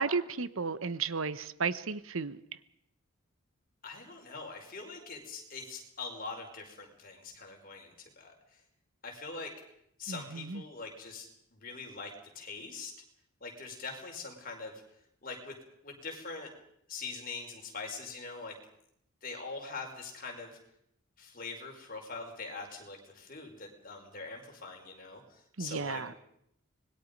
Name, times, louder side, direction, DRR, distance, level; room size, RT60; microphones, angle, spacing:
voice 1, 0.0-2.4 10.1-10.6 25.6-26.1, right 5 dB, 65° right, 15 dB, 1.0 m, -33 dB
voice 2, 3.8-8.3 9.0-9.5 10.0-12.9 13.4-14.8 15.2-15.6 15.8-16.5 16.9-18.5 19.2-20.6 21.2-26.2, left 4 dB, 40° left, 1 dB, 5.0 m, -43 dB
25.5 x 21.0 x 5.3 m, 0.74 s
head